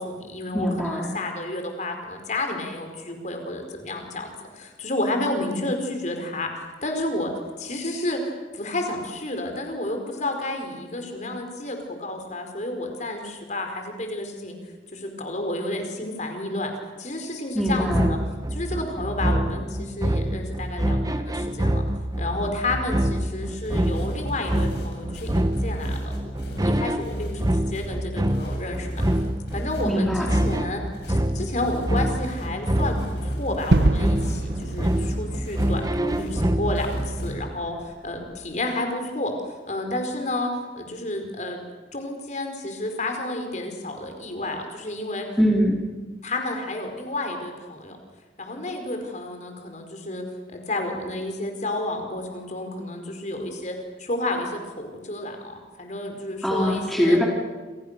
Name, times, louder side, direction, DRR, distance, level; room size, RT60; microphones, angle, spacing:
voice 1, 0.0-7.3 7.6-14.6 14.9-16.7 17.0-18.2 18.5-21.8 22.2-26.1 26.6-29.0 29.5-30.8 31.1-41.6 41.9-45.3 46.2-48.0 48.4-50.2 50.5-57.2, left 1 dB, 45° left, 5 dB, 4.8 m, -31 dB
voice 2, 0.5-1.1 17.5-18.1 29.8-30.3 45.4-45.8 56.4-57.2, equal, ahead, -2 dB, 3.2 m, -22 dB
sound 1, 17.7-37.5, right 1 dB, 20° right, 1.0 m, -26 dB
sound 2, 23.6-37.3, equal, 70° left, 8.0 m, -41 dB
Gunshot gunfire / Fireworks / Boom, 33.7-38.5, right 2 dB, 65° right, 0.9 m, -27 dB
28.0 x 27.5 x 6.8 m, 1.3 s
head